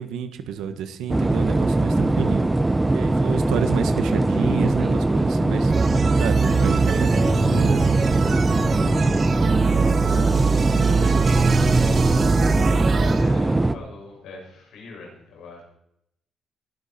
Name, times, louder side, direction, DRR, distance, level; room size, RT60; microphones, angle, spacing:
voice 1, 0.0-2.5 2.9-5.7 6.1-8.2, right 8 dB, 85° right, 8 dB, 1.6 m, -30 dB
sound 1, 1.1-13.7, right 2 dB, 15° right, 0.9 m, -21 dB
voice 2, 2.9-3.2 8.7-15.6, left 3 dB, 85° left, -1 dB, 6.5 m, -42 dB
sound 2, 5.7-13.2, right 5 dB, 45° right, 1.3 m, -22 dB
20.5 x 12.0 x 4.5 m, 0.77 s
cardioid pair, 90°, 0 cm